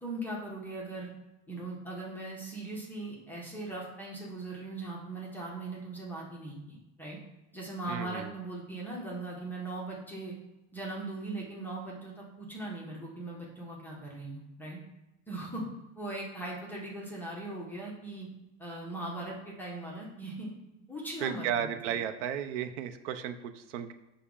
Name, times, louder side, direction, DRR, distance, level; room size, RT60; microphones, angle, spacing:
voice 1, 0.0-1.1 1.5-7.2 7.5-10.4 10.7-14.8 15.3-15.6 16.0-18.3 18.6-20.5 20.9-22.0, right 2 dB, 5° left, -4 dB, 0.3 m, -39 dB
voice 2, 7.9-8.3 21.2-23.9, right 9 dB, 90° right, 9 dB, 0.5 m, -34 dB
5.6 x 2.0 x 3.6 m, 0.98 s
supercardioid pair, 160°, 35 cm